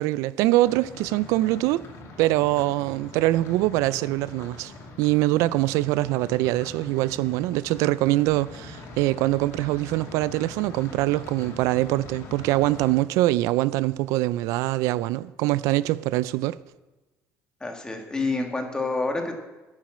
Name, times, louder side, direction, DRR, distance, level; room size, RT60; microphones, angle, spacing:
voice 1, 0.0-1.9 2.2-4.7 5.0-16.6, right 17 dB, 85° right, 0.3 m, -23 dB
sound 1, 0.6-12.9, left 3 dB, 60° left, 2.2 m, -43 dB
voice 2, 17.6-19.5, left 3 dB, 15° left, 1.7 m, -28 dB
10.5 x 7.4 x 7.4 m
cardioid pair, 130°, 5 cm